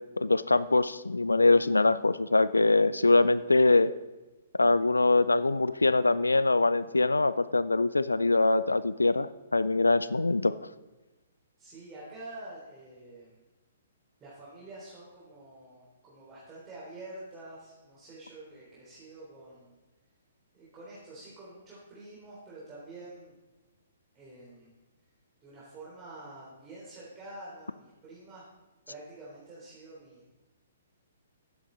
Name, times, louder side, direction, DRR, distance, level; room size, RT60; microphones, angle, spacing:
voice 1, 0.2-3.9 4.6-10.5, left 3 dB, 85° left, 16 dB, 0.4 m, -23 dB
voice 2, 11.6-13.4 14.2-19.8 20.5-23.3 24.1-24.8 25.4-28.4 28.9-30.3, right 2 dB, 20° right, -8 dB, 3.4 m, -47 dB
11.5 x 9.5 x 3.9 m, 1.1 s
figure-of-eight pair, 125°, 0 cm